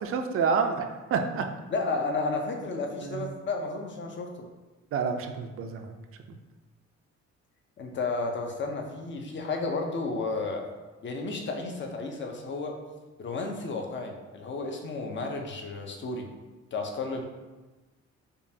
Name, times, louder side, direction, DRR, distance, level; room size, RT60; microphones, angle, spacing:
voice 1, 0.0-1.5 3.0-3.3 4.9-5.9 6.3-6.4, right 5 dB, 45° right, 5 dB, 0.5 m, -28 dB
voice 2, 1.7-4.3 7.8-10.6 11.0-12.7 13.2-16.3 16.7-17.2, left 3 dB, 40° left, 2 dB, 0.7 m, -32 dB
5.1 x 2.4 x 2.7 m, 1.2 s
cardioid pair, 90°, 30 cm